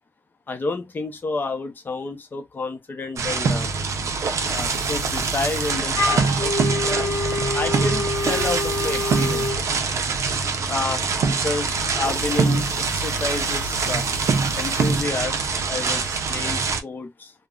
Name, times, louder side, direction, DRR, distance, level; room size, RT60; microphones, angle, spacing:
voice 1, 0.5-3.7 4.5-9.6 10.7-14.0 14.6-15.4 15.7-17.3, left 3 dB, 35° left, 0.6 m, -30 dB
sound 1, 3.2-16.8, right 4 dB, 65° right, 0.4 m, -24 dB
sound 2, 4.4-5.7 8.1-9.5 12.0-15.0, right 3 dB, 40° right, 1.1 m, -41 dB
Wind instrument woodwind instrument, 5.9-9.6, left 2 dB, 80° left, 0.6 m, -26 dB
3.4 x 2.0 x 2.3 m
wide cardioid pair, 170°, 6 cm